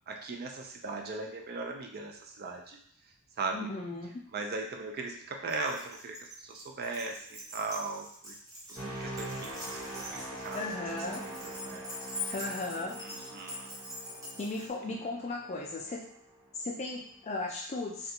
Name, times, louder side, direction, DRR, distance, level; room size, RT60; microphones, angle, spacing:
voice 1, 0.1-2.8 3.4-3.7 4.3-8.3 8.7-10.6 11.2-11.8 12.3-12.6 13.0-13.7 14.9-15.0, right 3 dB, 45° right, 2 dB, 0.4 m, -39 dB
voice 2, 3.5-4.1 10.5-11.3 12.3-13.0 14.4-16.0 16.6-18.1, left 2 dB, 30° left, -1 dB, 0.4 m, -36 dB
Keys jangling, 5.5-14.7, left 1 dB, 15° right, 0.7 m, -44 dB
sound 1, 8.7-16.6 17.0-17.3, right 1 dB, 85° right, 1.2 m, -43 dB
2.5 x 2.2 x 2.8 m, 0.64 s
head